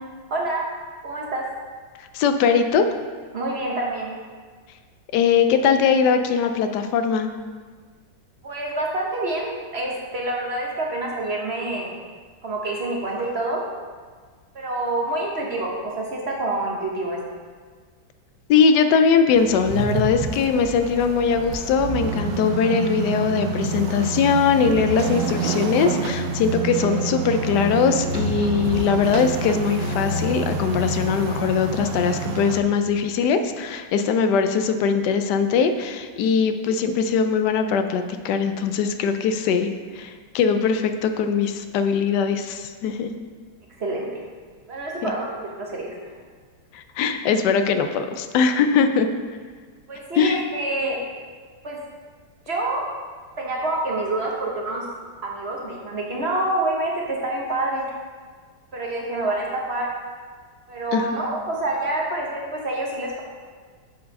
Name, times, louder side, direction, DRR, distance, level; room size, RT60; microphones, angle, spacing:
voice 1, 0.3-0.6 1.0-1.4 3.3-4.1 8.4-11.9 12.4-13.6 14.5-17.2 43.8-44.2 44.7-45.9 49.9-51.0 51.6-51.8 52.5-52.9 53.4-54.8 55.2-57.8 58.7-59.9 60.7-63.2, right 2 dB, 40° right, -2 dB, 1.1 m, -27 dB
voice 2, 2.1-2.9 5.1-7.3 18.5-39.7 39.9-43.1 45.0-45.1 46.7-49.1 50.2-50.4 60.9-61.2, left 6 dB, 75° left, 8 dB, 1.0 m, -21 dB
sound 1, 19.3-32.6, right 3 dB, 70° right, 1.1 m, -28 dB
7.5 x 4.7 x 5.3 m, 1.5 s
omnidirectional pair, 2.1 m